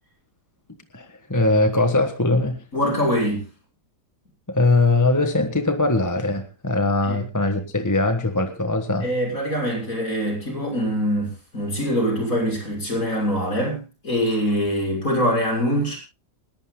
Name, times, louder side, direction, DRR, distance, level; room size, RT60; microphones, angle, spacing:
voice 1, 0.9-2.6 4.5-9.1, left 2 dB, 10° left, 7 dB, 1.3 m, -21 dB
voice 2, 2.7-3.5 7.0-7.2 9.0-16.0, equal, 55° left, 0 dB, 7.1 m, -24 dB
29.0 x 12.0 x 2.2 m, 0.28 s
omnidirectional pair, 1.7 m